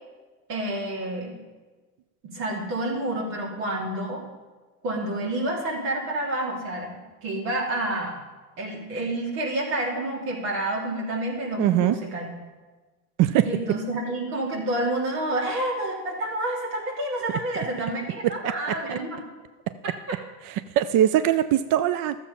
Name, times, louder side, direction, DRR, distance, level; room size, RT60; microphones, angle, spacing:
voice 1, 0.5-1.3 2.2-4.2 4.8-6.9 7.2-8.2 8.6-12.3 13.4-19.2 19.8-19.9, right 1 dB, 75° right, -3 dB, 3.7 m, -29 dB
voice 2, 11.6-11.9 13.2-13.5 18.2-18.5 18.9-19.0 20.5-22.2, right 12 dB, 45° right, 12 dB, 0.5 m, -21 dB
12.5 x 7.5 x 5.5 m, 1.3 s
supercardioid pair, 100°, 48 cm